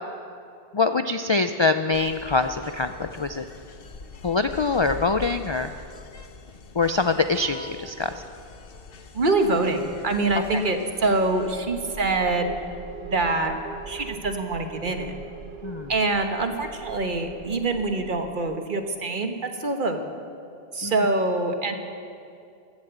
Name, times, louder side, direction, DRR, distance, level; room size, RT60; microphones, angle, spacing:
voice 1, 0.7-3.5 4.2-5.7 6.7-8.2 10.5-10.6 15.6-15.9 20.8-20.9, left 3 dB, 45° left, 9 dB, 0.4 m, -24 dB
sound 1, 1.9-11.6, left 3 dB, 65° left, 1.1 m, -43 dB
voice 2, 9.1-12.5 13.0-13.5 13.9-15.1 15.9-20.0 20.7-21.7, right 2 dB, 55° right, 6 dB, 1.3 m, -25 dB
sound 2, 10.9-18.7, right 5 dB, 75° right, 1.2 m, -41 dB
15.0 x 11.5 x 8.0 m, 2.4 s
omnidirectional pair, 1.1 m